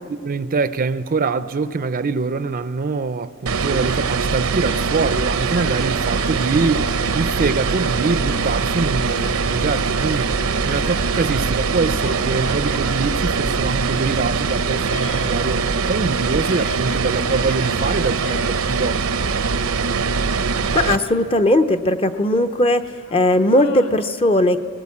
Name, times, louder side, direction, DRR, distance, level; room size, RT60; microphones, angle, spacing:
voice 1, 0.2-10.3 10.6-19.0, right 4 dB, 40° right, 0.5 m, -24 dB
sound 1, 3.5-21.0, right 5 dB, 75° right, 0.8 m, -22 dB
sound 2, 4.6-24.0, left 3 dB, 65° left, 1.5 m, -41 dB
voice 2, 20.7-24.6, left 1 dB, 25° left, 0.7 m, -18 dB
19.5 x 19.0 x 8.5 m
head